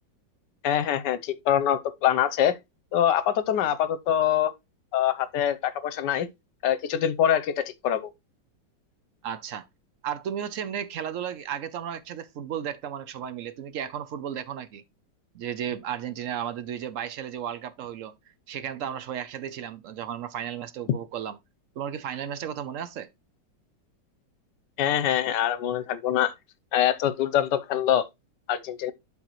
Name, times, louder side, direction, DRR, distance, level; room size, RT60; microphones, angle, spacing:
voice 1, 0.6-2.6 2.9-4.5 4.9-6.3 6.6-8.1 24.8-26.3 26.7-28.1 28.5-28.9, left 10 dB, 75° left, 1.2 m, -24 dB
voice 2, 9.2-9.7 10.0-14.8 15.3-18.1 18.5-21.4 21.8-23.1, right 9 dB, 70° right, 0.7 m, -34 dB
11.5 x 4.0 x 3.0 m
omnidirectional pair, 2.0 m